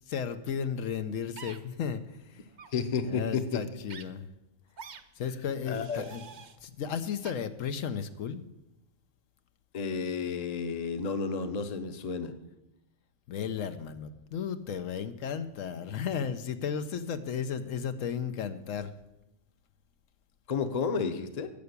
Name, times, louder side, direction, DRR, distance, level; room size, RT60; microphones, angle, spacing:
voice 1, 0.1-2.5 3.0-4.3 5.2-6.2 6.6-8.4 13.3-18.9, left 7 dB, 80° left, 9 dB, 1.1 m, -34 dB
sound 1, 1.4-1.6 2.5-2.7 3.9-4.0 4.8-5.0 5.7-6.6 7.2-7.3, right 6 dB, 45° right, 0.6 m, -46 dB
voice 2, 2.7-3.6 5.7-6.0 9.7-12.3 20.5-21.5, left 5 dB, 35° left, 9 dB, 0.8 m, -31 dB
10.5 x 6.9 x 8.1 m, 0.93 s
omnidirectional pair, 1.4 m